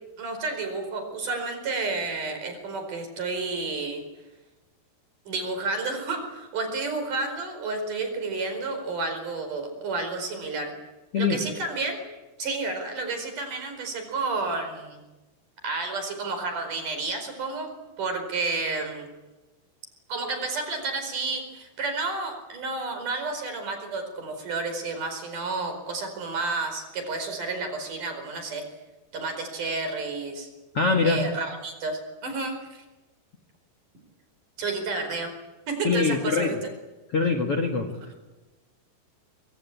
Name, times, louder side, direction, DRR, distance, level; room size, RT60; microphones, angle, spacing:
voice 1, 0.2-4.0 5.3-10.7 11.2-12.0 12.4-15.0 15.6-17.7 18.0-19.1 20.1-28.6 29.1-30.5 31.0-32.8 34.6-35.3 35.7-36.5, right 3 dB, 50° right, 6 dB, 6.1 m, -31 dB
voice 2, 30.7-31.2 35.8-36.6 37.1-37.9, left 4 dB, 50° left, 7 dB, 2.0 m, -23 dB
25.0 x 24.5 x 8.6 m, 1.1 s
omnidirectional pair, 4.9 m